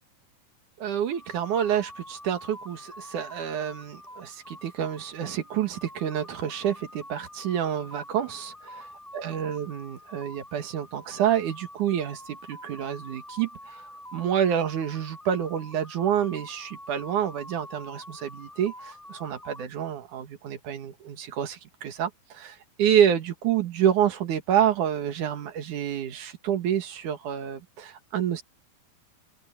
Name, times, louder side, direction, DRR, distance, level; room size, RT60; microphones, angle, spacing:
voice 1, 0.8-8.5 9.1-28.4, right 9 dB, 60° right, 2.9 m, -28 dB
sound 1, 1.1-19.6, left 1 dB, 5° right, 6.4 m, -46 dB
omnidirectional pair, 4.3 m